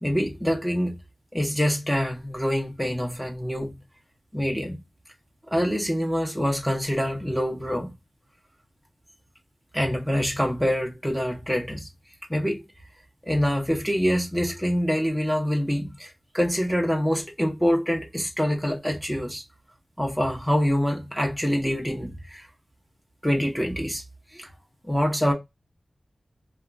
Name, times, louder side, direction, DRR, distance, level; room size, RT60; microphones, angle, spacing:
voice 1, 0.0-1.0 1.3-3.7 4.3-4.8 5.5-7.9 9.7-11.9 12.3-12.6 13.2-19.4 20.0-22.5 23.2-24.0 24.3-24.5 24.8-25.3, equal, ahead, 0.7 m, -25 dB
2.8 x 2.2 x 2.4 m
wide cardioid pair, 55°, 0 cm